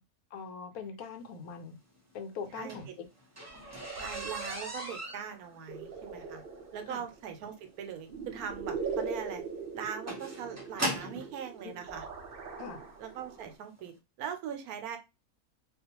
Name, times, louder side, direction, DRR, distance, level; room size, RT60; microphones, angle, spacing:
voice 1, 0.3-1.8 2.1-3.1 6.9-7.0 11.6-11.8 12.6-12.8, left 5 dB, 80° left, 1.0 m, -42 dB
sound 1, 2.4-11.3 12.2-12.3 12.9-13.1 13.4-13.5 13.8-13.9, equal, 15° right, 0.8 m, -39 dB
voice 2, 2.5-2.9 3.9-6.4 6.7-9.4 9.7-12.1 13.0-15.0, right 8 dB, 80° right, 1.1 m, -41 dB
sound 2, 3.5-13.5, right 5 dB, 60° right, 0.5 m, -41 dB
2.5 x 2.3 x 2.8 m
omnidirectional pair, 1.6 m